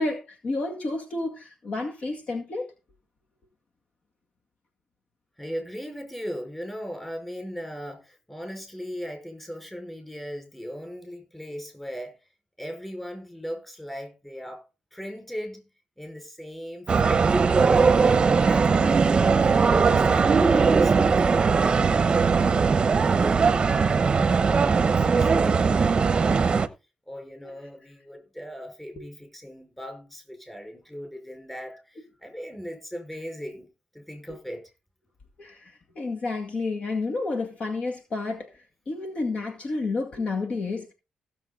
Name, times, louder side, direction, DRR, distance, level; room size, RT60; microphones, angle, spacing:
voice 1, 0.0-2.7 35.4-38.5 38.9-40.9, left 3 dB, 45° left, 2.0 m, -30 dB
voice 2, 5.4-12.2 12.6-14.6 14.9-15.7 16.0-21.8 22.3-26.6 27.1-33.7 33.9-34.6, equal, 10° left, 5.3 m, -38 dB
sound 1, 16.9-26.7, right 5 dB, 35° right, 0.8 m, -20 dB
16.0 x 7.2 x 4.0 m
cardioid pair, 120°, 3 cm